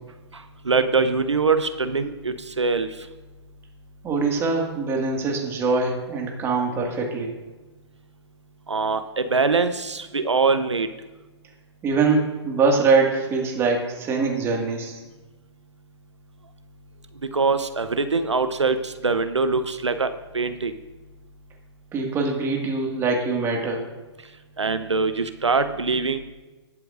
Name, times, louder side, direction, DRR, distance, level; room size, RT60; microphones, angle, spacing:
voice 1, 0.7-2.9 8.7-10.9 17.3-20.7 24.6-26.2, right 4 dB, 85° right, 10 dB, 0.8 m, -23 dB
voice 2, 4.0-7.3 11.8-15.0 21.9-23.8, right 4 dB, 15° right, 0 dB, 1.9 m, -23 dB
19.0 x 7.7 x 2.6 m, 1.2 s
figure-of-eight pair, 130°, 15 cm